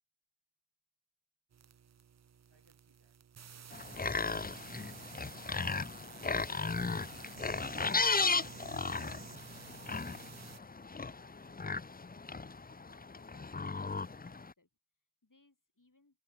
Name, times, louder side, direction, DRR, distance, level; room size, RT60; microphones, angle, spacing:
sound 1, 1.5-10.6, right 8 dB, 40° right, 0.4 m, -52 dB
voice 1, 2.5-3.2, right 3 dB, 60° right, 7.5 m, -72 dB
sound 2, 3.7-14.5, left 4 dB, 20° left, 0.5 m, -36 dB
voice 2, 8.7-16.2, left 2 dB, 40° left, 8.0 m, -71 dB
wide cardioid pair, 60°, 47 cm